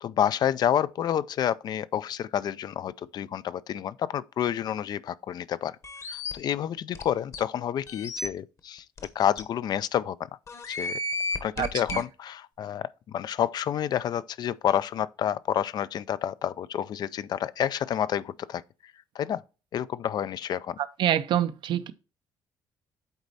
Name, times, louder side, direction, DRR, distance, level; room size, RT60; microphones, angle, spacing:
voice 1, 0.0-5.8 6.1-8.8 9.2-10.2 10.7-11.0 11.4-18.6 19.2-19.4 19.7-20.8, left 10 dB, 50° left, 0.4 m, -29 dB
sound 1, 5.8-6.3 6.9-7.0 7.3-7.4 7.9-8.3 9.0-9.1 9.4-9.5 10.5-12.0, left 2 dB, 35° left, 1.0 m, -32 dB
voice 2, 11.6-12.0 21.0-21.9, right 11 dB, 65° right, 0.6 m, -26 dB
8.0 x 4.2 x 4.0 m
cardioid pair, 125°, 9 cm